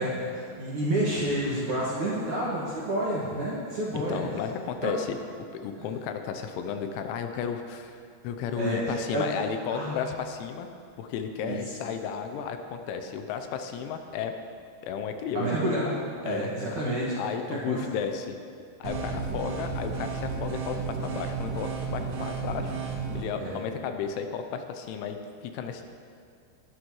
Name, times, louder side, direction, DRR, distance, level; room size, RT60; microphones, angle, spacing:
voice 1, 0.0-4.2 4.8-4.9 5.8-5.9 8.5-9.2 9.7-10.1 11.4-11.6 15.3-15.9 16.2-17.0 17.5-17.8 23.3-23.6, right 1 dB, 55° right, -7 dB, 2.4 m, -29 dB
voice 2, 3.9-5.2 5.6-10.7 11.0-14.3 14.8-15.6 16.3-16.5 17.2-18.3 18.8-22.8 23.1-25.2 25.5-25.9, left 7 dB, 85° left, 6 dB, 3.0 m, -33 dB
sound 1, 18.8-23.2, right 5 dB, 75° right, 3.8 m, -33 dB
19.5 x 11.5 x 3.1 m, 2.3 s
omnidirectional pair, 5.6 m